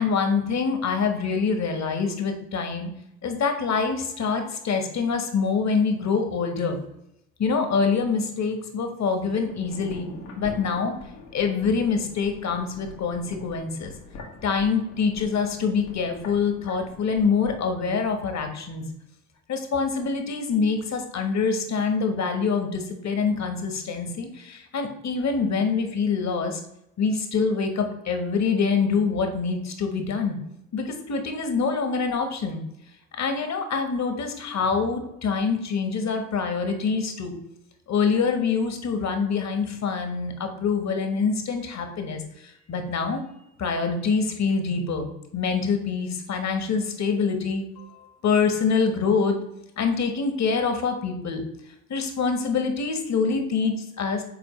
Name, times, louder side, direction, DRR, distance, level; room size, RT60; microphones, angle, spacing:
voice 1, 0.0-2.9 3.2-6.8 7.4-10.1 10.4-10.9 11.3-13.9 14.4-18.9 19.5-26.6 27.0-30.4 30.7-32.6 33.2-37.3 37.9-43.2 43.6-49.4 49.8-51.4 51.9-54.2, left 5 dB, 40° left, 6 dB, 1.3 m, -25 dB
sound 1, 9.5-18.5 18.8-18.9, left 2 dB, 70° left, 1.6 m, -44 dB
7.1 x 4.3 x 3.2 m, 0.81 s
hypercardioid pair, 60°, 44 cm